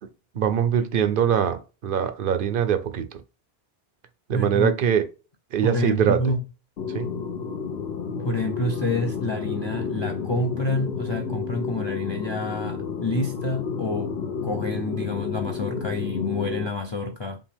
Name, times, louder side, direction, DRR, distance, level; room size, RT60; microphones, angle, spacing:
voice 1, 0.3-3.2 4.3-5.1 5.5-6.2 6.9-7.1, right 8 dB, 60° right, 0.8 m, -22 dB
voice 2, 4.3-4.8 5.6-6.4 8.2-17.4, left 2 dB, 35° left, 0.5 m, -28 dB
sound 1, 6.8-16.7, left 5 dB, 80° left, 1.2 m, -31 dB
5.4 x 2.5 x 3.4 m
omnidirectional pair, 1.0 m